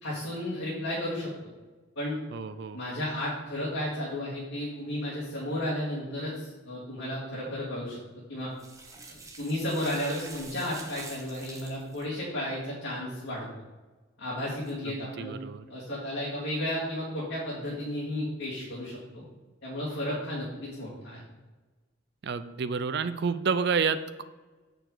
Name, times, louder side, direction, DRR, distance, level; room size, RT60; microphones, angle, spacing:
voice 1, 0.0-1.3 2.0-2.2 2.7-8.0 8.3-8.5 9.1-13.4 14.2-15.4 15.7-19.2 19.6-21.2, left 1 dB, 85° left, -9 dB, 2.4 m, -33 dB
voice 2, 2.3-2.8 14.9-15.6 22.2-24.2, right 5 dB, 55° right, 12 dB, 0.4 m, -29 dB
sound 1, 8.6-12.0 14.6-14.7, right 3 dB, 15° right, 0.8 m, -46 dB
6.8 x 6.4 x 3.9 m, 1.2 s
head